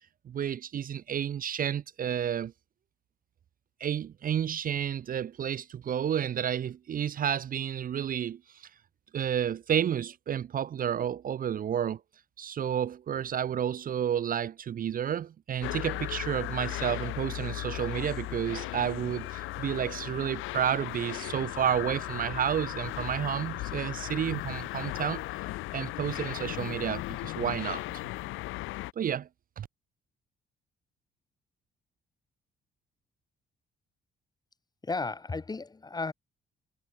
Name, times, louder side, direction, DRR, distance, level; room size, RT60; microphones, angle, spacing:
voice 1, 0.3-2.5 3.8-8.7 9.1-12.0 12.4-25.2 25.7-28.0 29.0-29.3 29.6-29.7, right 9 dB, 45° right, 0.5 m, -31 dB
sound 1, 15.6-28.9, left 18 dB, 85° left, 0.4 m, -36 dB
voice 2, 34.8-36.1, left 3 dB, 20° left, 0.8 m, -34 dB
cardioid pair, 90°, 20 cm